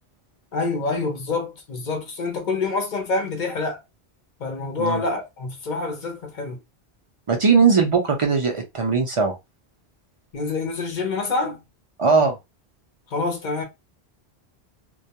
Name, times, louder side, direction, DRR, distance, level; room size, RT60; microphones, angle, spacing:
voice 1, 0.5-3.8 4.4-6.6 10.3-11.6 13.1-13.6, left 3 dB, 55° left, 0.7 m, -26 dB
voice 2, 7.3-9.3 12.0-12.4, right 5 dB, 55° right, 0.3 m, -19 dB
2.2 x 2.2 x 2.8 m
omnidirectional pair, 1.1 m